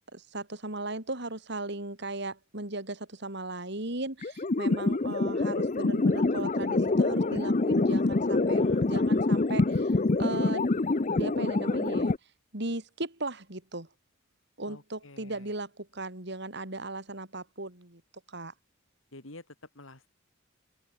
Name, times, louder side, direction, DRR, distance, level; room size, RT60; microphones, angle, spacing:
voice 1, 0.1-10.8 11.1-12.1 12.5-13.9 14.6-18.0 18.3-18.5, right 2 dB, 60° right, 4.1 m, -37 dB
sound 1, 4.2-12.2, left 2 dB, 40° left, 0.6 m, -26 dB
voice 2, 8.3-8.9 14.7-15.5 19.1-20.2, left 2 dB, 80° left, 3.9 m, -49 dB
open air
head